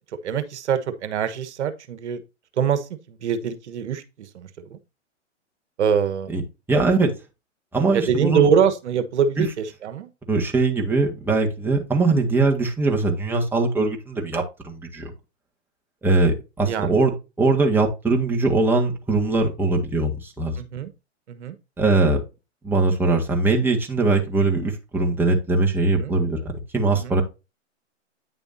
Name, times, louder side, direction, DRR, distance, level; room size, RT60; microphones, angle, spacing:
voice 1, 0.2-2.2 2.6-4.8 5.8-6.3 6.7-6.8 7.9-10.1 16.7-17.0 20.6-20.9 21.3-21.5 25.9-26.1 26.9-27.1, right 7 dB, 70° right, 1.3 m, -24 dB
voice 2, 6.7-7.1 7.7-8.4 9.4-9.5 10.3-15.1 16.0-20.6 21.8-22.2 22.6-27.2, right 3 dB, 5° right, 1.8 m, -21 dB
9.4 x 6.9 x 2.7 m
hypercardioid pair, 125°, 36 cm